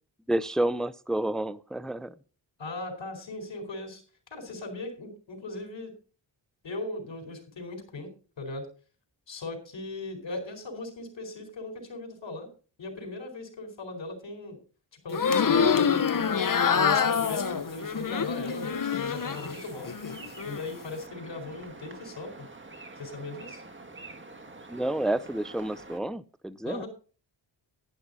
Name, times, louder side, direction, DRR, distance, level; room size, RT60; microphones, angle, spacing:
voice 1, 0.3-2.1 24.7-26.9, right 1 dB, ahead, 0.5 m, -29 dB
voice 2, 2.6-4.0 4.3-5.9 6.6-8.1 8.4-8.7 9.3-12.5 12.8-14.6 15.0-16.1 16.7-19.9 20.4-22.5 23.0-23.6 26.6-26.9, left 2 dB, 70° left, 4.6 m, -38 dB
sound 1, 15.1-19.5 19.9-20.6, left 6 dB, 45° left, 1.0 m, -26 dB
sound 2, 16.2-26.0, right 2 dB, 25° right, 1.9 m, -47 dB
11.0 x 11.0 x 4.1 m
wide cardioid pair, 95°, 46 cm